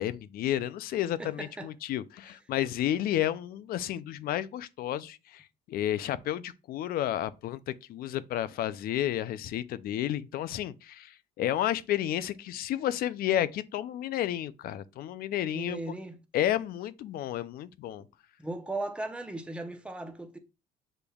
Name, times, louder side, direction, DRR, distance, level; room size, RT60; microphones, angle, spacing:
voice 1, 0.0-15.8 16.3-18.0, left 12 dB, 65° left, 0.4 m, -31 dB
voice 2, 1.2-1.7 15.5-16.2 18.4-20.4, right 2 dB, 5° right, 0.7 m, -37 dB
7.0 x 3.3 x 2.3 m
cardioid pair, 110°, 17 cm